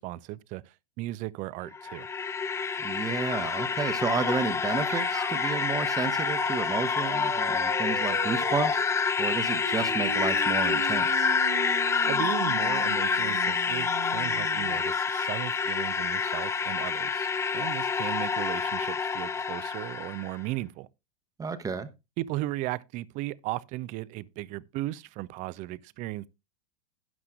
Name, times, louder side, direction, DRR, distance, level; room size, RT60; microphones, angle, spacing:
voice 1, 0.0-2.1 12.1-20.9 22.2-26.3, right 17 dB, 40° right, 0.5 m, -36 dB
sound 1, 1.7-20.3, left 5 dB, 15° left, 0.5 m, -28 dB
voice 2, 2.8-8.8 9.2-11.3 21.4-21.9, right 5 dB, 15° right, 1.0 m, -31 dB
sound 2, 4.9-14.8, right 10 dB, 65° right, 1.7 m, -40 dB
12.0 x 11.0 x 2.4 m
figure-of-eight pair, 90°, 20 cm